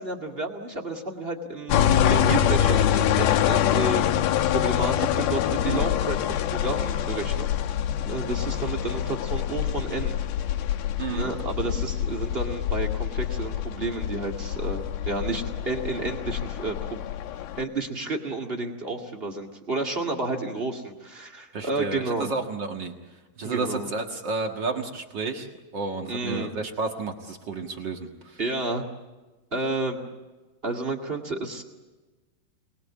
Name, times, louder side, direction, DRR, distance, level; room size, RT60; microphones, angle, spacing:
voice 1, 0.0-4.1 4.5-7.5 8.0-10.1 10.5-10.6 11.1-17.0 17.6-22.3 23.4-23.9 26.1-26.5 28.4-28.8 29.5-30.0 30.6-31.6, right 2 dB, 35° right, 2 dB, 0.9 m, -31 dB
sound 1, 1.7-17.6, left 10 dB, 75° left, 2.7 m, -25 dB
voice 2, 11.0-11.3 21.5-22.9 23.4-25.5 25.7-28.4, right 3 dB, 70° right, 3 dB, 1.0 m, -31 dB
27.5 x 20.0 x 8.4 m, 1.2 s
omnidirectional pair, 4.8 m